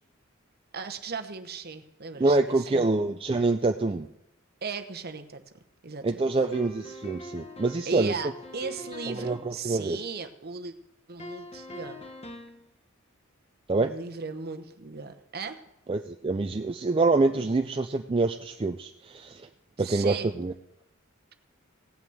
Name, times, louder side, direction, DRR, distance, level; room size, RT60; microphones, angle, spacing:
voice 1, 0.7-2.9 4.6-5.4 5.8-6.3 7.8-10.7 11.1-12.0 13.7-15.6 19.8-20.3, right 4 dB, 45° right, 8 dB, 1.0 m, -37 dB
voice 2, 2.2-4.1 6.0-8.1 9.1-10.0 13.7-13.9 15.9-19.5 19.8-20.5, right 3 dB, 25° right, 6 dB, 0.4 m, -26 dB
sound 1, 6.5-9.5 11.2-12.6, equal, 25° left, 1.1 m, -42 dB
17.0 x 6.0 x 7.8 m, 0.88 s
head